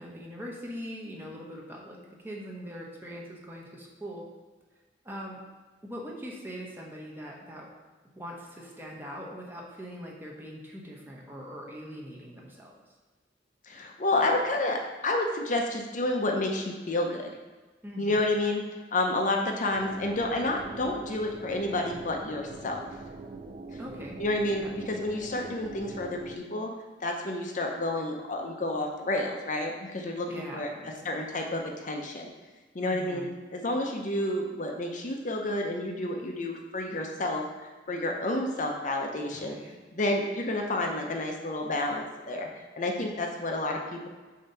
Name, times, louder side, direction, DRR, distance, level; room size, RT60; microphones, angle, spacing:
voice 1, 0.0-4.3 5.0-5.4 5.8-7.7 8.2-12.7 17.8-18.2 23.8-24.2 24.6-24.8 30.3-31.2 32.8-33.3 39.2-39.8, equal, 10° right, -2 dB, 0.9 m, -42 dB
voice 2, 13.6-17.3 18.0-18.6 18.9-22.8 24.2-26.7 27.0-30.7 31.0-32.3 32.7-33.3 33.5-37.4 37.9-39.6 39.9-44.1, left 2 dB, 45° left, 2 dB, 0.7 m, -30 dB
sound 1, 19.7-26.4, right 3 dB, 35° right, 0.3 m, -43 dB
6.8 x 2.8 x 5.5 m, 1.3 s
head